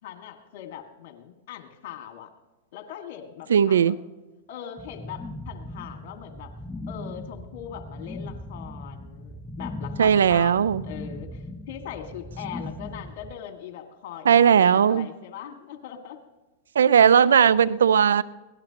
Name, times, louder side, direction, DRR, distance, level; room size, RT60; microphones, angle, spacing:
voice 1, 0.0-2.3 2.7-4.0 4.5-6.5 6.9-16.2, left 10 dB, 60° left, 5 dB, 2.0 m, -40 dB
voice 2, 3.5-4.0 10.0-10.8 14.3-15.1 16.8-18.2, right 8 dB, 85° right, 18 dB, 0.5 m, -18 dB
sound 1, 4.8-13.3, left 1 dB, 5° left, 0.7 m, -38 dB
23.0 x 18.0 x 3.0 m, 1.1 s
hypercardioid pair, 115°, 0 cm